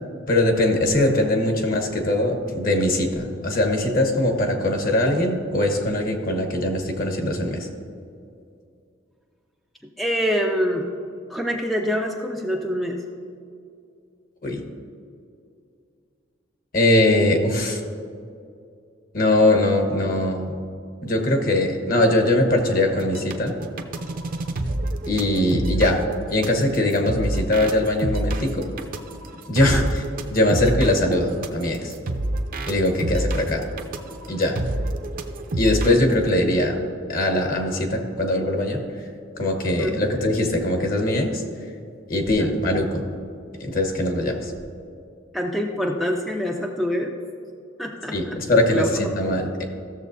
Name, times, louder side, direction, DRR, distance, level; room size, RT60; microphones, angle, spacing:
voice 1, 0.3-7.6 14.4-14.6 16.7-17.8 19.1-20.6 21.0-23.5 25.1-26.0 26.3-28.6 29.5-29.8 30.3-31.9 32.7-33.6 34.3-34.6 35.5-36.7 37.1-38.8 39.4-41.4 42.1-43.0 43.6-44.5 48.1-49.6, left 1 dB, 45° left, 2 dB, 1.2 m, -21 dB
voice 2, 10.0-10.8 11.3-13.0 29.6-29.8 39.8-40.1 42.4-42.6 45.3-47.1 47.8-48.4 48.7-48.9, equal, ahead, 1 dB, 0.4 m, -25 dB
sound 1, 22.8-36.1, right 1 dB, 45° right, 0.6 m, -28 dB
15.5 x 7.0 x 2.6 m, 2.4 s
head